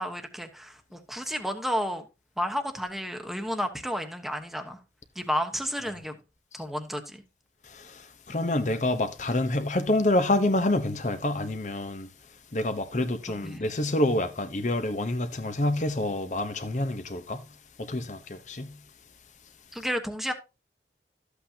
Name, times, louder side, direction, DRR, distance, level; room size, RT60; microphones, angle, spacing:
voice 1, 0.0-2.1 2.4-4.8 5.1-6.2 6.5-7.2 13.4-13.7 19.7-20.3, equal, ahead, 1.1 m, -31 dB
voice 2, 7.6-12.1 12.5-17.4 17.8-18.7, left 1 dB, 45° left, 0.9 m, -27 dB
13.0 x 8.2 x 2.8 m
head